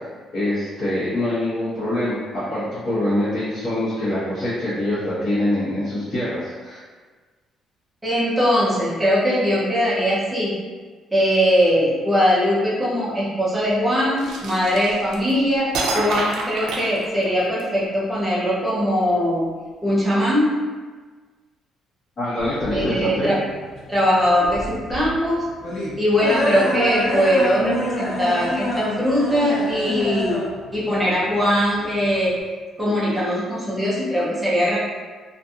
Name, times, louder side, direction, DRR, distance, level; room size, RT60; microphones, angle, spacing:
voice 1, 0.3-6.8 22.2-23.3, left 1 dB, 35° left, -15 dB, 1.1 m, -24 dB
voice 2, 8.0-10.5 11.1-15.7 15.9-19.4 19.8-20.5 22.7-23.4 23.9-25.4 26.0-30.4 30.7-32.4 32.8-34.8, equal, 5° right, -8 dB, 0.6 m, -21 dB
sound 1, 14.2-15.3 15.7-17.6, right 2 dB, 80° right, 0.4 m, -27 dB
sound 2, 22.4-32.4, left 1 dB, 65° left, 0.9 m, -27 dB
2.7 x 2.5 x 2.4 m, 1.4 s
cardioid pair, 175°, 0 cm